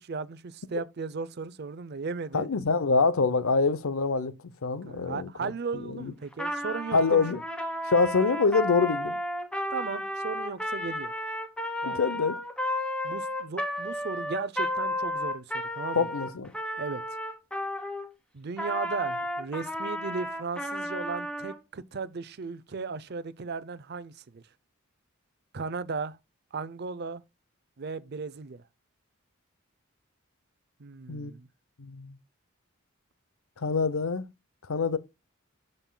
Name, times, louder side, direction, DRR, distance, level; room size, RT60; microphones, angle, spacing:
voice 1, 0.0-2.5 4.9-7.2 9.7-11.1 11.8-12.0 13.0-15.4 15.7-16.1 16.8-17.0 18.3-24.4 25.5-26.2 26.5-27.2 27.8-28.6 30.8-31.5, right 4 dB, 50° right, 0.5 m, -36 dB
voice 2, 2.3-4.3 4.6-6.1 6.9-7.4 7.9-9.2 11.9-12.4 16.0-16.5 31.1-31.3 31.8-32.2 33.6-34.3 34.7-35.0, left 4 dB, 85° left, 0.7 m, -25 dB
Trumpet, 6.3-18.1 18.6-21.6, left 1 dB, 5° left, 1.3 m, -33 dB
13.0 x 5.3 x 2.2 m
head